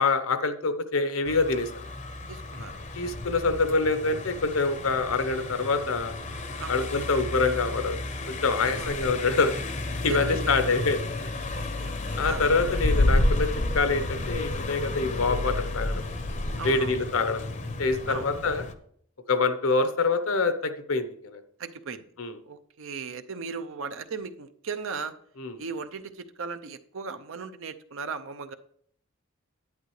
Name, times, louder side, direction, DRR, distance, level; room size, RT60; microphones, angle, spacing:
voice 1, 0.0-1.7 2.9-6.1 6.7-8.0 8.3-11.3 12.2-13.5 13.7-16.0 16.6-17.4 17.8-18.6 19.3-21.4 22.2-22.4 25.4-25.5, left 3 dB, 70° left, 10 dB, 0.9 m, -26 dB
Car passing by, 1.3-18.7, left 2 dB, 35° left, 0.7 m, -31 dB
voice 2, 2.3-3.2 6.6-6.9 8.7-9.0 10.1-10.8 11.5-12.4 16.6-17.0 18.1-18.3 21.6-22.1 22.4-25.1 25.6-28.5, right 5 dB, 65° right, 10 dB, 0.6 m, -37 dB
10.5 x 8.9 x 3.2 m, 0.64 s
head